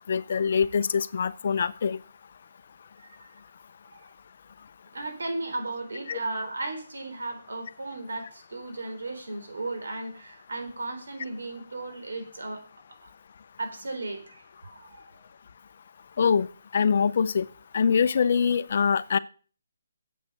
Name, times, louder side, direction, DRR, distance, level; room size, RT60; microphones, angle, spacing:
voice 1, 0.1-2.0 6.1-6.2 16.2-16.5 16.7-17.5 17.7-19.2, left 6 dB, 50° left, 15 dB, 0.6 m, -24 dB
voice 2, 4.9-12.6 13.0-13.1 13.6-14.4 14.7-15.2, right 2 dB, 85° right, 5 dB, 3.9 m, -35 dB
8.7 x 8.1 x 6.8 m, 0.40 s
hypercardioid pair, 170°, 0 cm